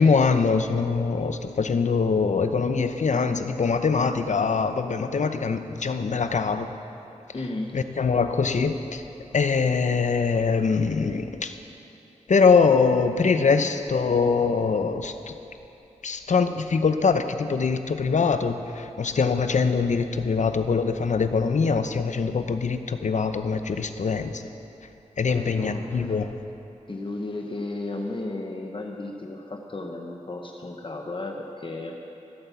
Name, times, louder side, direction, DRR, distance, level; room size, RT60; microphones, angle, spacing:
voice 1, 0.0-6.7 7.7-9.0 9.3-11.5 12.3-15.2 16.0-24.4 25.2-26.3, left 5 dB, 70° left, 9 dB, 0.7 m, -23 dB
voice 2, 7.3-7.8 25.3-26.2 26.9-32.0, left 2 dB, 40° left, 2 dB, 1.0 m, -34 dB
15.0 x 8.8 x 7.0 m, 2.8 s
wide cardioid pair, 100°, 13 cm